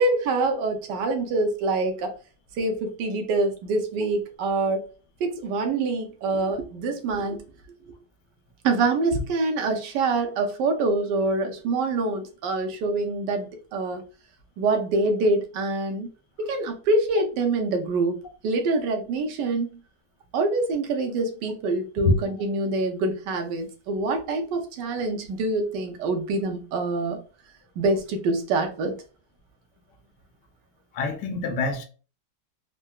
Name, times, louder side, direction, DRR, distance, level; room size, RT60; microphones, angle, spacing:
voice 1, 0.0-2.1 2.6-4.8 5.2-7.4 8.6-14.0 14.6-16.1 16.4-18.2 18.4-19.7 20.3-27.2 27.8-28.9, right 3 dB, 80° right, 1.2 m, -25 dB
voice 2, 30.9-31.9, left 3 dB, 75° left, 1.1 m, -24 dB
3.8 x 2.1 x 2.2 m
omnidirectional pair, 1.9 m